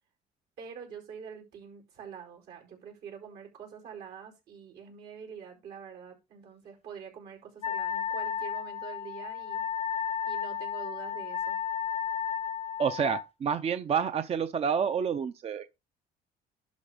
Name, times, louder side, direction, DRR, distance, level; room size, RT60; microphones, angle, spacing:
voice 1, 0.6-9.6 10.3-11.6, right 7 dB, 75° right, 5.0 m, -45 dB
Wind instrument woodwind instrument, 7.6-13.3, left 8 dB, 35° left, 0.5 m, -33 dB
voice 2, 12.8-15.7, right 7 dB, 35° right, 0.6 m, -29 dB
11.5 x 4.2 x 5.1 m
cardioid pair, 110°, 17 cm